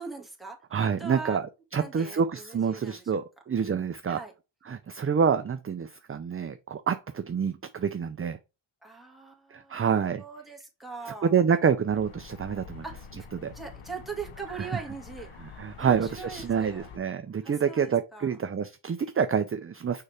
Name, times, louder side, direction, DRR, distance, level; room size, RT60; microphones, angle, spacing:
voice 1, 0.0-1.4 1.7-3.2 4.1-4.3 8.8-9.9 10.2-11.4 12.8-13.3 13.5-15.3 15.8-16.9 17.4-18.3, right 5 dB, ahead, 1.9 m, -41 dB
voice 2, 0.7-1.5 1.7-4.2 4.7-8.4 9.5-10.2 11.1-12.8 13.3-13.5 14.7-14.8 15.6-20.0, right 6 dB, 30° right, 0.4 m, -27 dB
sound 1, 11.9-17.0, left 6 dB, 90° left, 1.1 m, -46 dB
6.6 x 4.9 x 3.3 m
wide cardioid pair, 140°, 49 cm